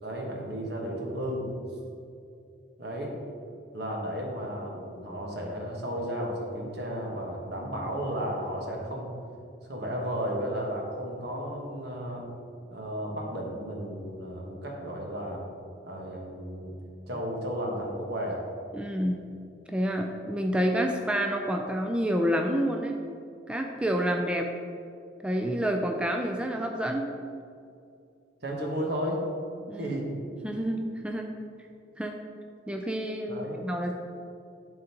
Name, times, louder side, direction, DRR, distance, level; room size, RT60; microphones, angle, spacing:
voice 1, 0.0-1.5 2.8-3.2 3.7-9.1 9.6-12.3 12.7-15.4 15.8-16.7 17.1-18.4 28.4-29.2 29.7-30.1 33.3-33.6, equal, 65° right, -1 dB, 1.2 m, -33 dB
voice 2, 18.7-19.1 19.7-23.0 23.5-24.5 25.2-27.0 29.7-29.9 30.4-31.3 32.0-32.2 32.7-33.9, equal, 5° right, 2 dB, 0.3 m, -28 dB
11.0 x 3.9 x 2.9 m, 2.5 s
head